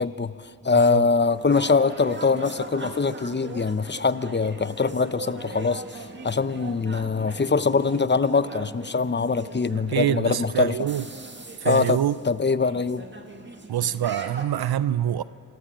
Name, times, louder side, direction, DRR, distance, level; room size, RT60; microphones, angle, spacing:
voice 1, 0.0-10.8 11.6-13.1, left 4 dB, 30° left, 0.8 m, -23 dB
voice 2, 0.7-1.0 9.9-11.0 11.6-12.2 13.7-15.3, right 11 dB, 80° right, 0.6 m, -25 dB
sound 1, 1.3-14.4, right 2 dB, 30° right, 2.1 m, -40 dB
26.0 x 18.0 x 7.5 m
cardioid pair, 50°, 37 cm